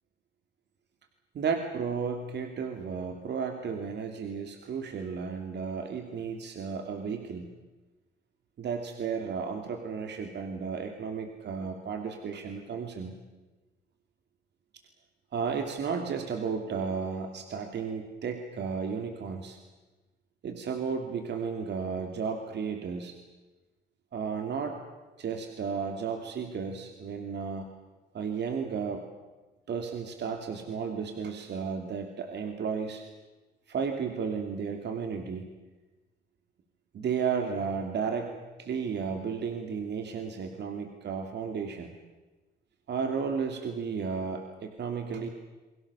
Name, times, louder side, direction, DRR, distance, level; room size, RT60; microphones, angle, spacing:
voice 1, 1.3-7.5 8.6-13.2 15.3-19.6 20.4-23.1 24.1-24.8 25.2-27.7 28.1-29.0 29.7-33.0 33.7-35.5 36.9-38.3 38.6-41.9 42.9-45.3, right 6 dB, 60° right, 4 dB, 3.0 m, -33 dB
30.0 x 22.5 x 7.1 m, 1.2 s
cardioid pair, 90°, 20 cm